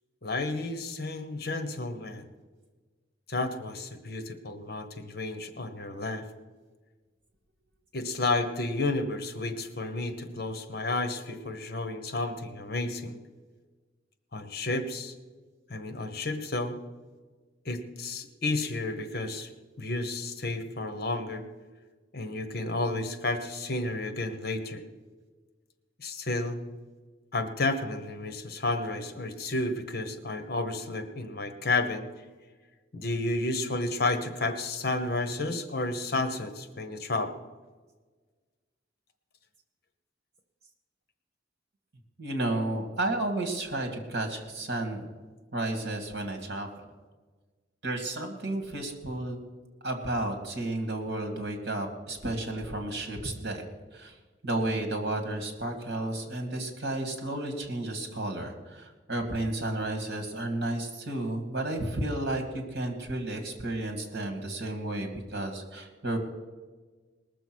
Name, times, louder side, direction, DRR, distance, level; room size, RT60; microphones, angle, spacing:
voice 1, 0.2-2.2 3.3-6.2 7.9-13.2 14.3-15.1 15.7-16.8 17.6-19.5 19.8-21.4 22.1-24.8 26.0-26.6 27.3-32.1 32.9-37.3, left 2 dB, 55° left, 9 dB, 1.1 m, -31 dB
voice 2, 42.2-45.1 45.5-46.9 47.8-49.4 49.8-53.6 53.9-54.2 54.4-66.2, right 1 dB, 60° right, 5 dB, 2.2 m, -32 dB
20.0 x 6.9 x 6.2 m, 1.4 s
head